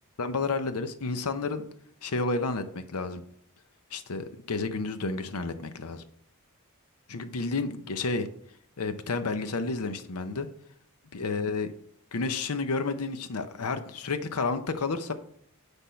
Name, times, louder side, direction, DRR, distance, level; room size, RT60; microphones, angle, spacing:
voice 1, 0.2-1.6 2.0-3.2 3.9-6.0 7.1-8.3 8.8-10.5 11.1-11.7 12.1-15.1, left 3 dB, 85° left, 10 dB, 0.7 m, -31 dB
10.0 x 3.6 x 5.6 m, 0.65 s
head